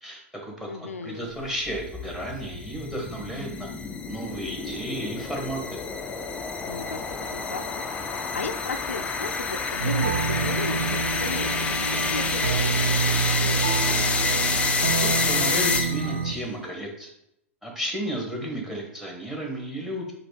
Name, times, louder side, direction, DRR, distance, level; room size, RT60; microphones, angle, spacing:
voice 1, 0.0-3.7 4.1-5.8 15.0-17.1 17.6-20.1, right 1 dB, 5° right, 0 dB, 1.2 m, -33 dB
voice 2, 0.7-1.3 6.7-7.6 8.1-13.0 13.4-14.3, left 4 dB, 80° left, 8 dB, 0.5 m, -36 dB
sound 1, 1.5-16.3, left 4 dB, 15° left, 0.4 m, -28 dB
sound 2, 9.8-16.3, right 6 dB, 75° right, 0.6 m, -27 dB
4.1 x 2.6 x 4.9 m, 0.78 s
figure-of-eight pair, 105°, 7 cm